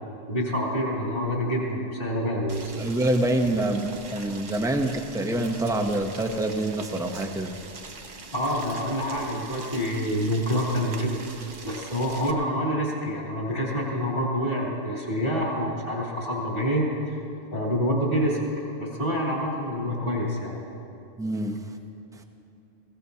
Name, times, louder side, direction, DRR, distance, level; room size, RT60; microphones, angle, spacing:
voice 1, 0.3-2.8 8.3-11.2 11.6-17.2 17.5-18.4 18.8-20.6, equal, 50° left, -4 dB, 3.2 m, -27 dB
Boiling, 2.5-12.3, right 4 dB, 50° right, 1.0 m, -43 dB
voice 2, 2.8-7.5 21.2-21.6 22.2-22.3, right 1 dB, 5° right, 4 dB, 0.6 m, -26 dB
21.0 x 16.5 x 2.8 m, 2.8 s
omnidirectional pair, 1.2 m